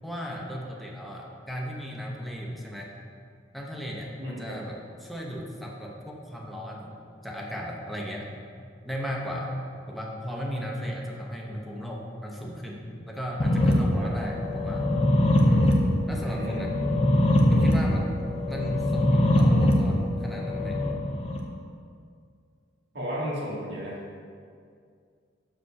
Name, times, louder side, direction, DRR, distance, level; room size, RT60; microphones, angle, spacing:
voice 1, 0.0-2.9 3.5-6.9 7.2-9.5 9.9-14.9 15.4-15.8 16.1-16.7 17.5-18.1 18.5-20.8, equal, ahead, -2 dB, 0.9 m, -36 dB
voice 2, 4.2-4.6 14.0-14.1 16.3-16.7 22.9-24.0, equal, 65° right, -6 dB, 2.0 m, -34 dB
sound 1, 13.4-21.4, left 1 dB, 35° left, 0.8 m, -23 dB
6.3 x 5.0 x 5.7 m, 2.2 s
head